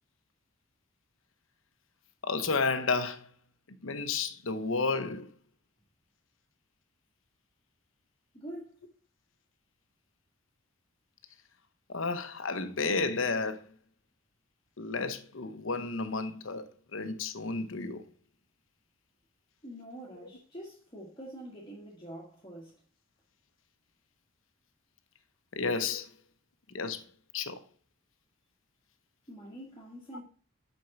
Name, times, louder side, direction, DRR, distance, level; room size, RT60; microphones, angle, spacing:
voice 1, 2.2-3.3 3.8-5.3 11.9-13.6 14.8-18.0 25.6-26.1 26.7-27.0 27.3-27.6, left 4 dB, 75° left, 0.9 m, -32 dB
voice 2, 8.3-8.8 19.6-22.7 29.3-30.2, right 1 dB, 25° left, 1.6 m, -45 dB
6.3 x 5.3 x 5.9 m
head